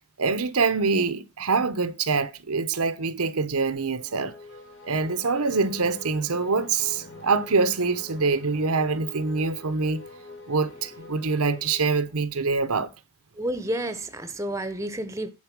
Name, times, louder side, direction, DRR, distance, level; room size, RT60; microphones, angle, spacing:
voice 1, 0.2-4.3 4.8-10.0 10.5-12.9, right 4 dB, 90° right, 0.9 m, -25 dB
sound 1, 4.0-12.4, left 2 dB, 65° left, 5.5 m, -45 dB
voice 2, 13.4-15.3, right 1 dB, 15° right, 0.7 m, -30 dB
10.5 x 4.2 x 6.0 m
head